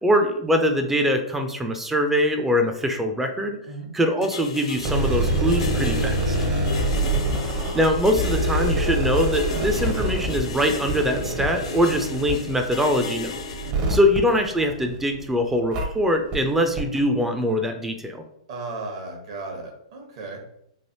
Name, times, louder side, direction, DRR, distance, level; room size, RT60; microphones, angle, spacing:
voice 1, 0.0-3.6 3.9-6.4 7.6-13.4 13.9-18.2, equal, 10° right, 5 dB, 0.4 m, -23 dB
sound 1, 4.2-13.7, left 6 dB, 70° left, 0.4 m, -35 dB
sound 2, 4.8-15.2 15.7-15.8 16.3-16.4 16.7-16.8, right 1 dB, 35° right, 0.8 m, -26 dB
voice 2, 6.5-6.9 13.6-13.9 18.5-20.5, right 3 dB, 60° right, 1 dB, 1.1 m, -36 dB
3.2 x 2.5 x 2.7 m, 0.73 s
hypercardioid pair, 115°, 3 cm